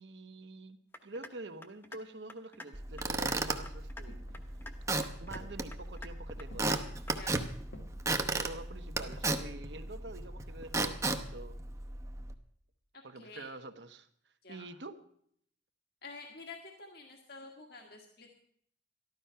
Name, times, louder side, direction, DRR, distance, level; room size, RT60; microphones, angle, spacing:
voice 1, 0.0-4.2 5.2-6.8 8.3-11.5 13.0-14.1 14.5-14.9, right 2 dB, 70° right, 8 dB, 1.1 m, -46 dB
sound 1, 0.9-1.3 1.6-2.0 2.3-2.7 3.0-3.4 3.7-4.0 4.3-4.8 5.0-5.4 5.7-6.1 6.4-6.8 7.1-7.2, left 2 dB, 10° left, 1.0 m, -47 dB
Squeak / Wood, 2.7-12.3, right 2 dB, 15° right, 0.8 m, -35 dB
sound 2, 4.0-4.9 5.3-5.9 6.5-6.9 7.7-8.2 9.0-9.4 9.9-10.5 10.8-10.9, left 1 dB, 80° left, 2.2 m, -54 dB
voice 2, 7.1-7.4 13.1-13.5 14.4-14.7 16.0-18.3, left 3 dB, 60° left, 2 dB, 1.6 m, -49 dB
13.5 x 12.0 x 5.6 m, 0.65 s
head